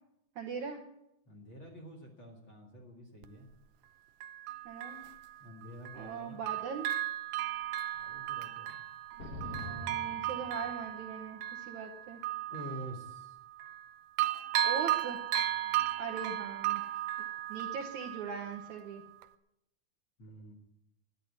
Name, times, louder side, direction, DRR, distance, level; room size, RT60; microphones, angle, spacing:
voice 1, 0.4-0.8 4.7-5.0 5.9-6.9 9.2-12.2 14.6-15.2 16.0-16.8 17.5-19.0, right 5 dB, 65° right, 2 dB, 2.0 m, -40 dB
voice 2, 1.3-3.5 5.4-6.4 7.9-8.7 12.5-13.4 15.4-15.9 20.2-20.5, equal, 40° left, 0 dB, 2.1 m, -48 dB
Bell, 3.2-3.3 4.2-6.2 6.5-13.9 14.2-18.8 19.2-19.3, right 13 dB, 80° right, 2.0 m, -36 dB
sound 1, 9.2-11.1, left 1 dB, 90° left, 0.8 m, -44 dB
12.0 x 10.5 x 9.4 m, 0.83 s
omnidirectional pair, 4.6 m